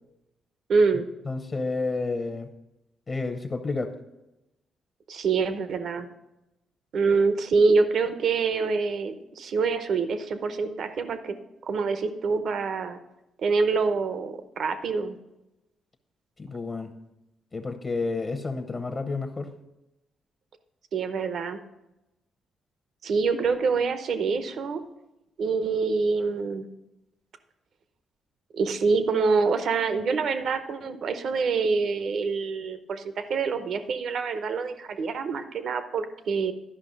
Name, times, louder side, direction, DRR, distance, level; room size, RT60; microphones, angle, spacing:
voice 1, 0.7-1.1 5.1-6.1 6.9-11.3 11.6-13.0 13.4-15.2 20.9-21.6 23.0-24.8 25.4-26.7 28.5-36.5, right 4 dB, 65° right, 10 dB, 0.8 m, -26 dB
voice 2, 1.2-2.5 3.1-3.9 16.4-16.9 17.5-19.5, left 3 dB, 35° left, 7 dB, 0.8 m, -30 dB
11.5 x 5.4 x 5.3 m, 0.94 s
cardioid pair, 80°, 0 cm